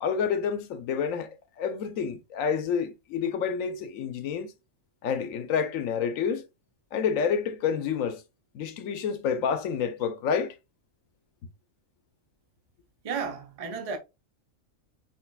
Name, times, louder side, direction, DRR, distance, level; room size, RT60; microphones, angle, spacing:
voice 1, 0.0-1.3 1.6-4.5 5.0-6.4 6.9-8.2 8.5-10.5, left 6 dB, 75° left, 1.1 m, -28 dB
voice 2, 13.0-14.0, right 5 dB, 35° right, 0.7 m, -33 dB
6.0 x 3.5 x 2.3 m
omnidirectional pair, 1.4 m